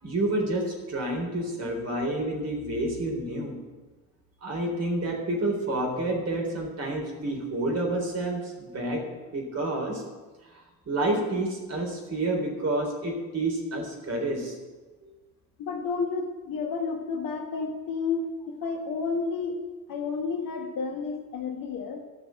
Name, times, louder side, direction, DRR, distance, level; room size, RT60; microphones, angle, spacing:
voice 1, 0.0-3.6 4.4-9.1 9.3-10.0 10.9-14.5 15.0-15.1, right 1 dB, 30° right, 0 dB, 3.9 m, -29 dB
voice 2, 15.6-19.6 19.9-22.0, left 4 dB, 45° left, 4 dB, 1.6 m, -31 dB
13.5 x 5.9 x 7.8 m, 1.3 s
figure-of-eight pair, 60°, 49 cm